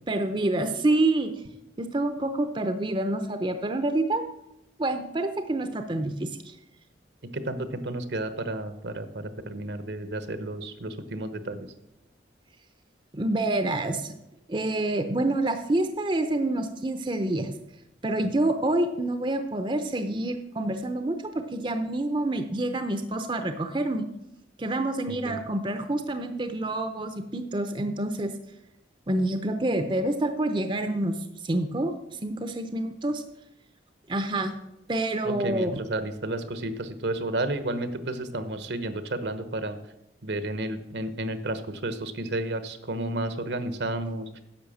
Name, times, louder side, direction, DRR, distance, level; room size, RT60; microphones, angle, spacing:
voice 1, 0.1-1.3 1.8-4.2 4.8-6.5 13.1-14.1 14.5-17.5 18.0-24.0 24.6-28.3 29.1-31.2 31.4-31.9 32.2-33.2 34.1-34.5 34.9-35.8, right 2 dB, 25° right, 8 dB, 0.6 m, -27 dB
voice 2, 7.3-11.7 25.1-25.4 35.2-39.8 40.2-44.3, right 1 dB, 70° right, 11 dB, 1.1 m, -32 dB
10.5 x 6.9 x 7.2 m, 0.86 s
head